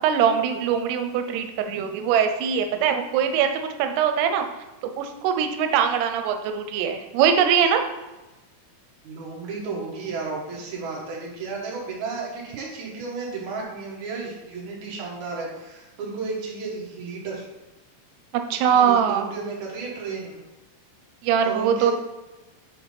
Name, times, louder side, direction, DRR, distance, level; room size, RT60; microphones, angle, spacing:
voice 1, 0.0-3.5 3.8-4.5 5.0-7.8 18.5-19.3 21.2-21.9, right 8 dB, 90° right, 6 dB, 2.7 m, -22 dB
voice 2, 9.0-17.5 18.5-20.4 21.4-21.9, right 4 dB, 55° right, -2 dB, 2.3 m, -33 dB
8.0 x 3.1 x 5.2 m, 1.1 s
omnidirectional pair, 4.6 m